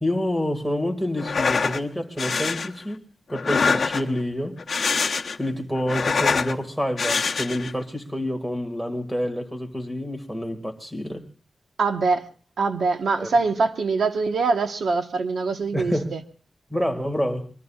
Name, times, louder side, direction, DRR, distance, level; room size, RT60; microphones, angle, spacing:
voice 1, 0.0-3.0 3.3-4.6 5.4-11.3 13.2-13.3 15.7-16.1 16.7-17.5, equal, 5° right, 2.1 m, -28 dB
sound 1, 1.2-1.8 2.2-2.7 3.3-4.2 4.6-5.5 5.8-6.5 7.0-7.7, left 5 dB, 55° left, 0.9 m, -24 dB
voice 2, 11.8-12.3 12.6-16.2, right 4 dB, 85° right, 1.3 m, -23 dB
24.5 x 22.5 x 2.4 m
wide cardioid pair, 175°, 0 cm